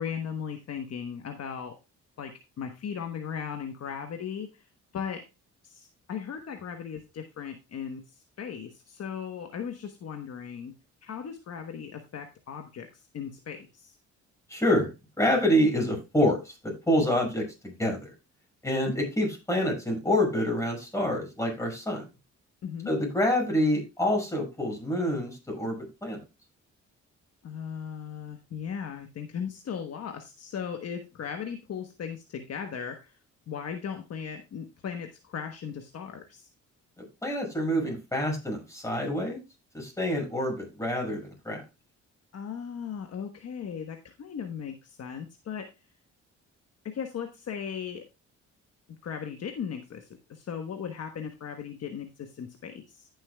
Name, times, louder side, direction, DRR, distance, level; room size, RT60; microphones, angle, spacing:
voice 1, 0.0-1.7 2.2-4.5 4.9-5.2 5.6-8.0 8.4-10.7 11.0-14.0 18.9-19.0 22.6-22.9 27.4-33.1 33.5-36.4 42.3-45.7 46.8-48.0 48.9-53.1, left 7 dB, 55° left, 5 dB, 1.2 m, -37 dB
voice 2, 14.5-14.9 15.2-18.1 18.6-22.0 22.9-26.2 37.0-39.4 39.7-41.6, equal, 10° left, 0 dB, 6.0 m, -27 dB
15.0 x 7.0 x 2.3 m, 0.27 s
cardioid pair, 90°, 30 cm